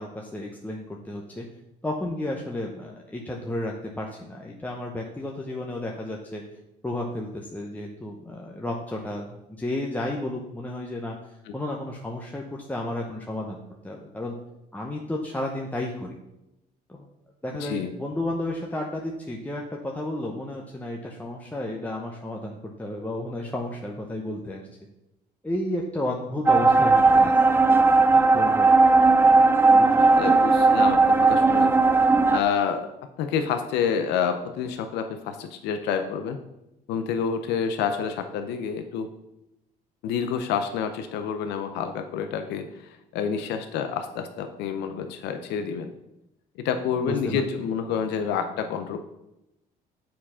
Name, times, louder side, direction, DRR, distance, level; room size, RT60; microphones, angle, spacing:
voice 1, 0.0-1.5 1.8-6.4 6.8-14.4 14.7-16.2 16.9-17.1 17.4-24.7 25.4-27.4 28.1-29.0 29.7-30.2 47.0-47.4, left 1 dB, 10° left, 0 dB, 0.8 m, -32 dB
sound 1, 26.5-32.4, right 3 dB, 15° right, 0.3 m, -17 dB
voice 2, 30.2-31.7 32.3-32.9 33.2-36.4 36.9-39.1 40.0-45.9 46.6-49.0, left 7 dB, 85° left, 7 dB, 0.7 m, -28 dB
7.3 x 4.6 x 5.6 m, 0.90 s
cardioid pair, 110°, 17 cm